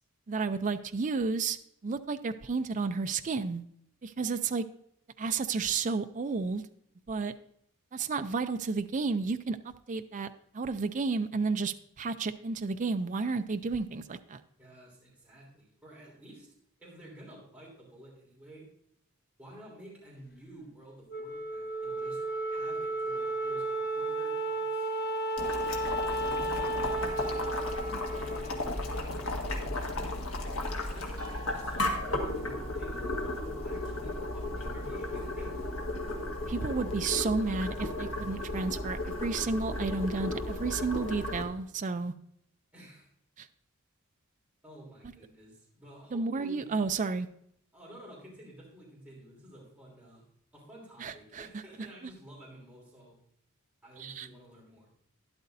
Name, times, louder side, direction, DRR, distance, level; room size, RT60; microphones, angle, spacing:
voice 1, 0.3-1.6 1.8-3.6 4.0-4.6 5.2-6.6 7.1-7.3 7.9-9.6 9.9-10.3 10.5-14.4 36.5-42.1 43.4-43.5 46.1-47.3 51.0-51.5 54.0-54.3, right 4 dB, 35° right, 9 dB, 0.4 m, -32 dB
voice 2, 14.6-16.5 16.8-18.7 19.4-22.2 22.5-24.9 26.1-30.1 30.7-35.7 42.7-43.1 44.6-46.7 47.7-50.2 50.5-53.2 53.8-54.9, right 1 dB, 5° right, -5 dB, 3.2 m, -51 dB
Wind instrument woodwind instrument, 21.1-29.7, right 2 dB, 45° left, 1.1 m, -34 dB
Boiling, 25.4-41.4, left 2 dB, 65° left, 1.6 m, -34 dB
sound 1, 31.2-37.0, right 1 dB, 70° right, 1.0 m, -54 dB
12.5 x 11.0 x 2.6 m, 0.71 s
head